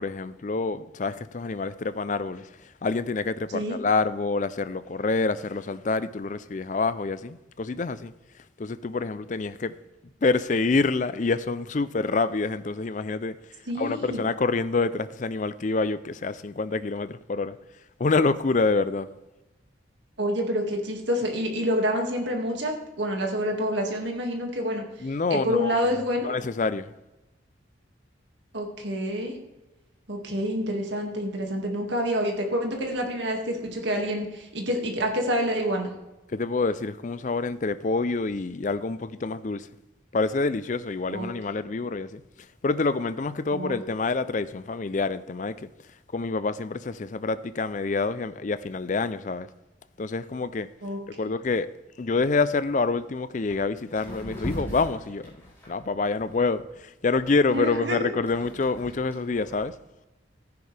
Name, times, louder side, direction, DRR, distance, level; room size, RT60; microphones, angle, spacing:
voice 1, 0.0-8.1 8.6-9.7 10.2-13.4 13.8-17.6 18.0-19.1 25.0-26.9 36.3-39.7 40.1-42.2 42.6-45.7 46.1-49.5 50.0-50.7 51.2-51.7 52.0-55.3 55.7-59.8, left 3 dB, 40° left, 0.4 m, -27 dB
voice 2, 13.7-14.2 20.2-24.8 25.3-26.3 28.5-29.4 30.1-35.9 41.1-41.3 43.5-43.8 50.8-51.0 57.5-58.0, equal, 65° right, 2.1 m, -27 dB
sound 1, 53.0-53.1 53.5-53.6 53.9-56.6 57.1-59.7, equal, 15° left, 4.8 m, -39 dB
14.5 x 9.7 x 3.4 m
head